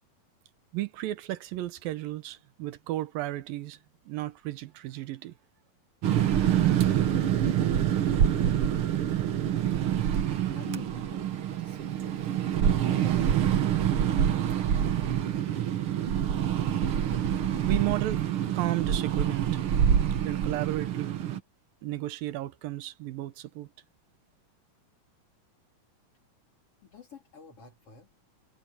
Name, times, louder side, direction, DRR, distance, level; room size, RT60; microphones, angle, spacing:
voice 1, 0.7-5.4 17.6-19.7 20.1-21.3 21.8-23.7, right 16 dB, 85° right, 2.7 m, -34 dB
sound 1, 6.0-21.4, right 9 dB, 65° right, 1.4 m, -26 dB
voice 2, 7.8-8.7 10.5-12.4 12.6-13.7 26.8-28.1, left 6 dB, 40° left, 5.0 m, -48 dB
omnidirectional pair, 4.0 m